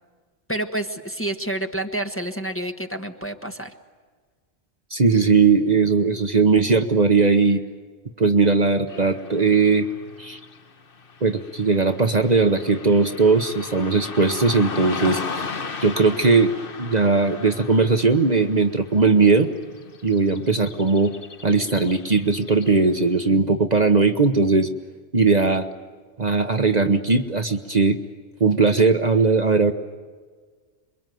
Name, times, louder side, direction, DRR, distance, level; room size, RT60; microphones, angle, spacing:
voice 1, 0.5-3.7, right 1 dB, 10° left, 5 dB, 1.4 m, -29 dB
voice 2, 4.9-7.6 8.2-9.9 10.2-10.4 11.2-15.4 15.8-19.5 20.0-21.1 21.4-24.7 25.1-25.6 26.2-28.0 28.4-29.7, right 4 dB, 40° right, 7 dB, 1.2 m, -19 dB
Car passing by / Traffic noise roadway noise, 8.9-23.2, left 4 dB, 55° left, 1.3 m, -37 dB
27.0 x 23.0 x 9.3 m, 1.5 s
omnidirectional pair, 1.1 m